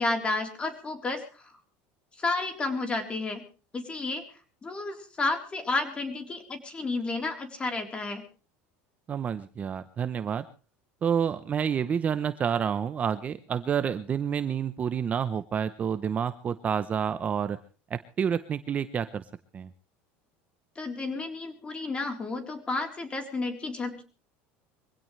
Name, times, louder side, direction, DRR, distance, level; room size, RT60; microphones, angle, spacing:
voice 1, 0.0-1.4 2.2-3.4 3.7-4.2 4.6-8.2 20.8-24.0, left 3 dB, 20° left, 5 dB, 3.8 m, -31 dB
voice 2, 9.1-10.4 11.0-17.6 17.9-19.2 19.5-19.7, right 7 dB, 25° right, 12 dB, 0.8 m, -29 dB
23.5 x 16.5 x 3.3 m, 0.35 s
cardioid pair, 140°, 5 cm